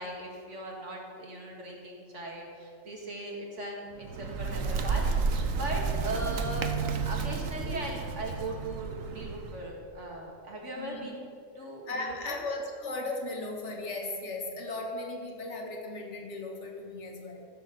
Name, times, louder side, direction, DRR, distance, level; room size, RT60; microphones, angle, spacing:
voice 1, 0.0-6.7 7.0-12.4, right 1 dB, 65° right, -1 dB, 2.4 m, -39 dB
Bird, 3.9-9.7, right 5 dB, 85° right, 1.3 m, -31 dB
voice 2, 10.8-11.1 11.9-17.5, left 2 dB, 65° left, 2 dB, 1.9 m, -36 dB
14.5 x 6.4 x 6.9 m, 2.4 s
omnidirectional pair, 1.3 m